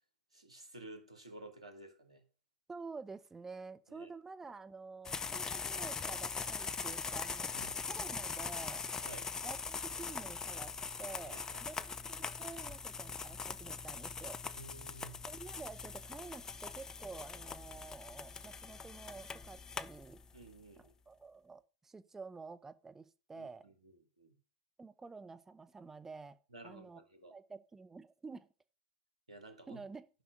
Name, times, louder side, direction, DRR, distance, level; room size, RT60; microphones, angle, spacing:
voice 1, 0.3-2.2 3.9-4.1 7.5-7.8 9.0-9.3 11.3-11.6 14.6-15.2 20.3-20.9 23.4-24.4 26.5-27.3 29.3-29.8, right 2 dB, 90° right, 2.2 m, -53 dB
voice 2, 2.7-7.5 7.9-8.9 9.4-14.4 15.3-20.2 21.1-23.7 24.8-26.4 26.6-27.0 27.3-28.5 29.7-30.1, right 4 dB, 10° right, 0.8 m, -49 dB
sound 1, 5.1-20.5, left 5 dB, 20° left, 0.6 m, -41 dB
10.5 x 5.7 x 6.5 m
figure-of-eight pair, 100°, 3 cm